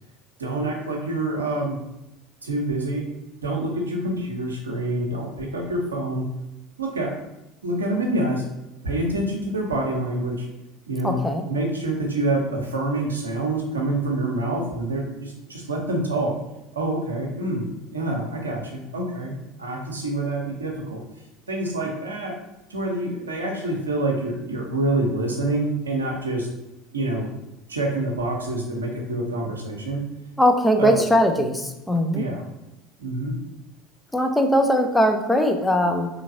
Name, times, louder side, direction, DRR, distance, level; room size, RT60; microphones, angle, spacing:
voice 1, 0.4-1.8 2.4-3.0 3.4-6.3 6.8-7.1 7.6-8.4 8.8-10.5 10.9-11.2 11.5-16.3 16.7-17.7 17.9-21.0 21.5-22.3 22.7-26.5 26.9-27.3 27.7-30.0 30.8-31.0 32.1-32.4 33.0-33.4, right 2 dB, 90° right, 0 dB, 0.7 m, -26 dB
voice 2, 11.0-11.4 30.4-32.3 34.1-36.1, equal, 5° left, 4 dB, 0.5 m, -20 dB
3.8 x 2.9 x 2.6 m, 0.91 s
hypercardioid pair, 75°, 0 cm